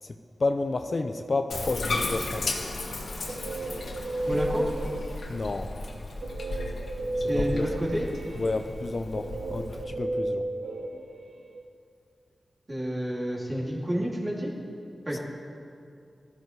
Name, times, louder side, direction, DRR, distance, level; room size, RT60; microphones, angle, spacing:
voice 1, 0.0-2.6 5.3-5.7 7.2-7.7 8.3-10.5 15.1-15.2, left 3 dB, 50° left, 7 dB, 0.7 m, -31 dB
Bathtub (filling or washing), 1.5-9.8, left 2 dB, 80° left, 1.6 m, -35 dB
Guitar, 2.9-5.4 6.2-11.6, right 2 dB, 90° right, 1.0 m, -34 dB
voice 2, 4.3-4.7 7.3-8.1 12.7-14.5 15.1-15.2, equal, 30° right, -5 dB, 3.4 m, -29 dB
18.0 x 13.5 x 4.8 m, 2.4 s
wide cardioid pair, 95°, 0 cm